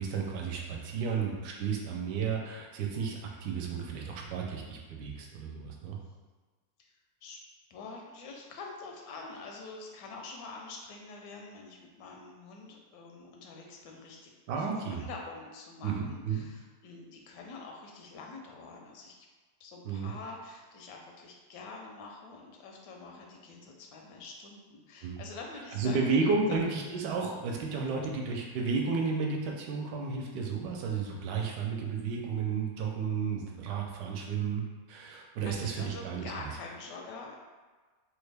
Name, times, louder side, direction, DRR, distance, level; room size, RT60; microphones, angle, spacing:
voice 1, 0.0-6.0 14.5-15.0 15.8-16.4 19.8-20.1 25.0-25.2 25.8-34.6 34.9-36.2, right 5 dB, 80° right, 0 dB, 1.2 m, -32 dB
voice 2, 7.7-14.3 14.6-19.1 19.6-26.1 26.5-26.6 27.9-28.0 35.4-37.4, left 3 dB, 80° left, 1 dB, 1.2 m, -46 dB
3.2 x 2.2 x 3.3 m, 1.3 s
omnidirectional pair, 1.8 m